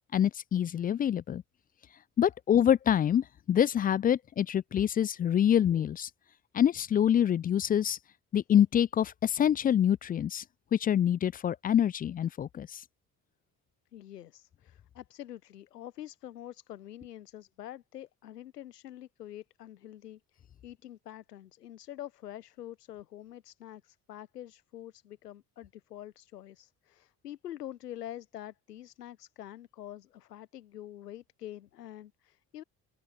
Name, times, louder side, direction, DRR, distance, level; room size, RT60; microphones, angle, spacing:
voice 1, 0.0-1.4 2.2-6.1 6.5-8.0 8.3-10.4 10.7-12.8, left 9 dB, 20° left, 0.3 m, -26 dB
voice 2, 13.9-32.6, left 12 dB, 85° left, 0.9 m, -46 dB
figure-of-eight pair, 50°, 46 cm